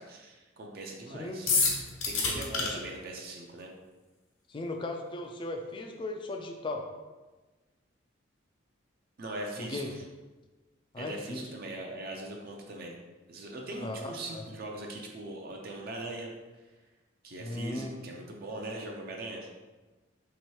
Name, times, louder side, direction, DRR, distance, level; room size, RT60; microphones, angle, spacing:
voice 1, 0.0-1.5 2.0-3.7 9.2-10.0 11.0-13.0 13.3-16.3 17.2-19.5, right 1 dB, 50° right, 1 dB, 0.5 m, -40 dB
voice 2, 1.1-1.6 2.6-2.8 4.5-6.8 9.6-10.0 10.9-11.4 13.8-14.4 17.4-17.9, left 2 dB, 25° left, 3 dB, 0.3 m, -37 dB
sound 1, 1.5-2.7, left 4 dB, 75° left, 0.9 m, -26 dB
3.1 x 2.9 x 4.6 m, 1.2 s
head